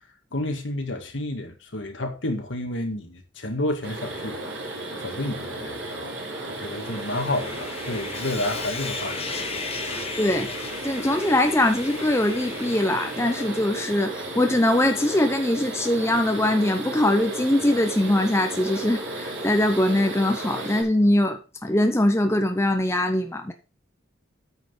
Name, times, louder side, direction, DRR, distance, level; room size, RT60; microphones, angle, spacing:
voice 1, 0.3-4.7 5.0-6.2 6.5-10.1, left 1 dB, 65° left, 2.0 m, -31 dB
sound 1, 3.8-20.8, right 2 dB, 70° right, 5.5 m, -34 dB
Sawing, 6.6-14.1, left 5 dB, 30° left, 1.3 m, -37 dB
voice 2, 10.2-10.5 10.8-23.5, left 1 dB, 15° left, 0.8 m, -22 dB
9.1 x 6.0 x 5.3 m
head